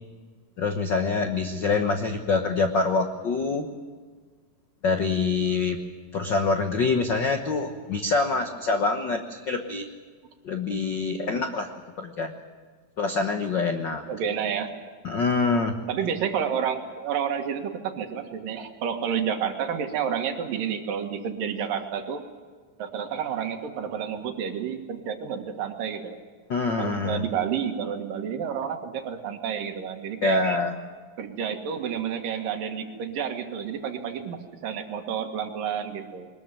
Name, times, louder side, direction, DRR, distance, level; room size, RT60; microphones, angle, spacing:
voice 1, 0.6-3.7 4.8-5.8 6.1-9.8 10.4-11.7 12.0-12.4 13.0-14.0 15.0-15.7 26.5-27.2 30.2-30.7, left 4 dB, 75° left, 5 dB, 1.0 m, -25 dB
voice 2, 14.1-14.8 15.9-22.2 22.8-26.2 26.8-30.4 31.2-36.3, right 8 dB, 80° right, 5 dB, 3.4 m, -30 dB
22.0 x 20.5 x 7.6 m, 1.5 s
omnidirectional pair, 3.9 m